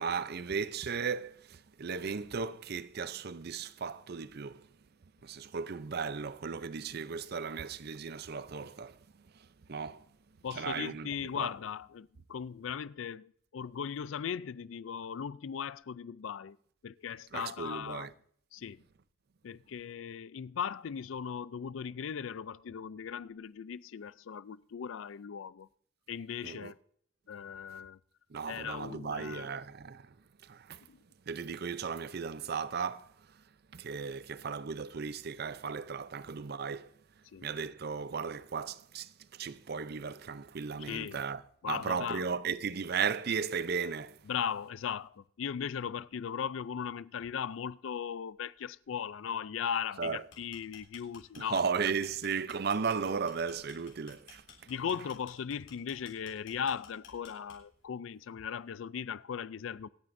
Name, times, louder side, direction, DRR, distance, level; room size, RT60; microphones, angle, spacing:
voice 1, 0.0-4.7 5.2-9.0 9.7-10.0 10.5-11.1 11.3-11.5 17.3-18.1 26.4-26.7 28.3-30.1 30.4-30.8 31.3-33.1 33.7-36.9 37.4-44.2 50.0-50.2 51.4-54.4, right 5 dB, 55° right, 0.5 m, -36 dB
voice 2, 10.4-16.6 16.8-18.1 18.5-18.8 19.4-25.7 26.1-26.7 27.3-28.0 28.5-29.5 30.9-31.0 37.3-37.5 40.9-41.2 41.6-42.2 44.3-51.6 54.7-59.9, left 7 dB, 85° left, 0.4 m, -38 dB
sound 1, 50.2-57.8, left 6 dB, 70° left, 3.5 m, -55 dB
26.5 x 9.2 x 2.6 m
head